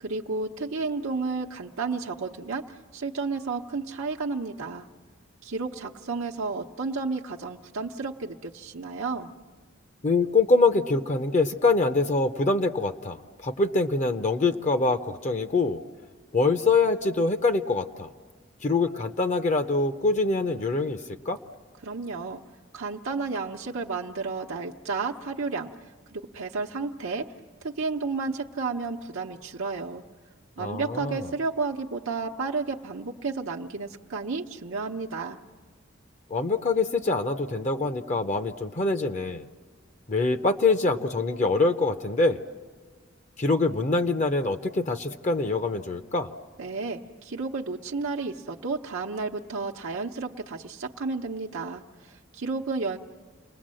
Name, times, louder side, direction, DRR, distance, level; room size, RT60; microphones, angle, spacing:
voice 1, 0.0-4.9 5.4-9.3 21.8-22.4 22.7-25.7 26.1-27.3 27.6-30.0 30.6-35.4 46.6-53.0, right 4 dB, 90° right, 1 dB, 0.9 m, -32 dB
voice 2, 10.0-15.8 16.3-18.1 18.6-21.0 21.3-21.4 30.6-31.3 36.3-39.4 40.1-42.4 43.4-46.3, left 3 dB, 35° left, 9 dB, 0.6 m, -24 dB
28.5 x 20.5 x 7.6 m, 1.4 s
head